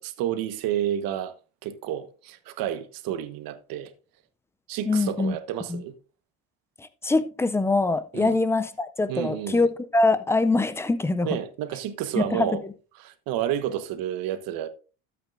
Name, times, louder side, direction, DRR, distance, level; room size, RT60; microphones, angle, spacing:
voice 1, 0.0-1.3 1.6-3.9 4.7-5.9 8.1-8.4 9.1-9.7 11.2-12.6 13.0-14.7, right 11 dB, 55° right, 1.2 m, -30 dB
voice 2, 4.9-5.4 5.7-5.8 6.8-11.4 12.1-12.6, left 3 dB, 5° left, 0.3 m, -24 dB
12.5 x 8.4 x 2.5 m
supercardioid pair, 125°, 43 cm